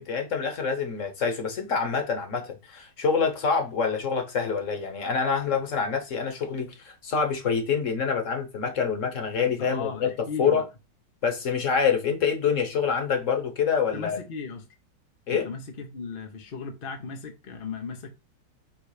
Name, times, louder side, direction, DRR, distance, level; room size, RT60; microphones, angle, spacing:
voice 1, 0.0-10.1 10.4-10.6 11.2-14.2 15.3-15.5, left 6 dB, 45° left, 1.2 m, -26 dB
voice 2, 9.6-10.6 13.9-14.6 15.3-18.1, left 5 dB, 60° left, 0.5 m, -36 dB
6.0 x 3.2 x 4.9 m
omnidirectional pair, 2.3 m